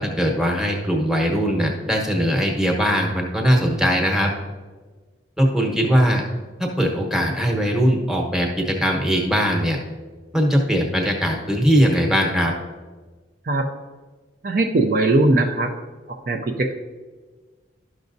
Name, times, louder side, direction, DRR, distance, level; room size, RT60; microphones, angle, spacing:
voice 1, 0.0-4.3 5.4-6.2 6.6-9.8 10.3-12.5, equal, ahead, 1 dB, 1.0 m, -20 dB
voice 2, 14.4-15.7 16.1-16.7, right 2 dB, 50° right, 2 dB, 0.5 m, -20 dB
12.0 x 6.0 x 2.6 m, 1.4 s
head